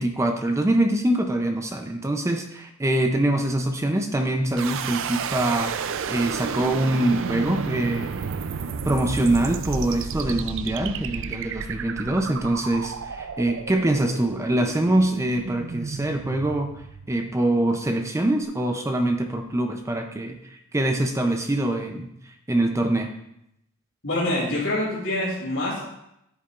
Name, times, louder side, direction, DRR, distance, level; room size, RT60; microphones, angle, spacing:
voice 1, 0.0-8.1 8.9-16.7 17.1-20.4 20.7-22.1 22.5-23.1, right 1 dB, 15° right, 5 dB, 0.5 m, -24 dB
sound 1, 4.6-17.5, right 5 dB, 65° right, 0.4 m, -32 dB
voice 2, 24.0-25.9, left 1 dB, 65° left, -6 dB, 2.8 m, -25 dB
10.5 x 8.2 x 2.5 m, 0.82 s
head